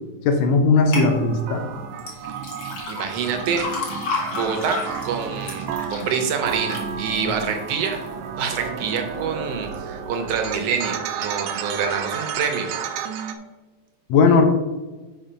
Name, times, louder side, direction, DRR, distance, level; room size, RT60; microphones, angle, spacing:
voice 1, 0.3-1.6 14.1-14.4, left 4 dB, 75° left, 5 dB, 1.9 m, -17 dB
sound 1, 0.9-1.1 2.0-8.1 8.6-9.1 9.6-9.7, left 3 dB, 55° left, 2.2 m, -32 dB
sound 2, 1.0-13.4, right 7 dB, 90° right, 2.0 m, -32 dB
voice 2, 2.9-3.7 4.3-8.0 8.4-12.7, right 6 dB, 70° right, 5 dB, 1.7 m, -26 dB
5.6 x 5.2 x 5.0 m, 1.2 s
omnidirectional pair, 3.3 m